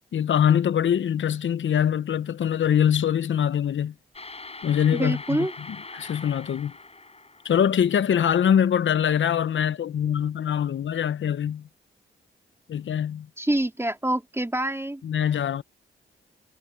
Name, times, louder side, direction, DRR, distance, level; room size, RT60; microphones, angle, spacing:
voice 1, 0.1-3.9 4.6-6.7 7.4-11.6 12.7-13.3 15.0-15.6, left 9 dB, 70° left, 0.8 m, -23 dB
sound 1, 4.1-8.0, left 3 dB, 30° left, 6.0 m, -42 dB
voice 2, 4.9-5.5 13.4-15.0, right 1 dB, 10° right, 3.6 m, -26 dB
cardioid pair, 50°, 20 cm